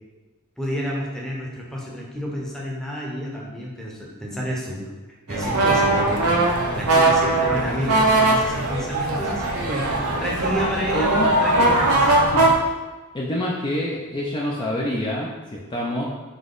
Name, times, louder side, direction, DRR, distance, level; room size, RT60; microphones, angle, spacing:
voice 1, 0.6-4.9 5.3-11.1 11.4-12.3, equal, 5° left, -4 dB, 0.7 m, -30 dB
sound 1, 5.3-12.5, right 2 dB, 75° right, 0.6 m, -20 dB
voice 2, 10.9-11.4 12.3-12.5 13.1-16.1, left 1 dB, 20° left, -4 dB, 0.4 m, -27 dB
3.8 x 3.0 x 3.8 m, 1.2 s
head